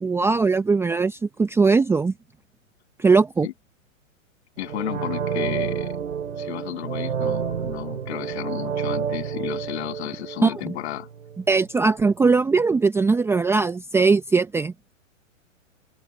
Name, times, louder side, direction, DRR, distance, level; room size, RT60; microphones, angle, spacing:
voice 1, 0.0-2.1 3.0-3.5 10.4-10.7 11.5-14.7, right 4 dB, 5° right, 0.7 m, -20 dB
voice 2, 4.6-5.9 6.4-11.1, left 15 dB, 55° left, 7.6 m, -33 dB
sound 1, 4.6-11.4 11.8-11.9, right 7 dB, 90° right, 3.7 m, -29 dB
hypercardioid pair, 130°, 39 cm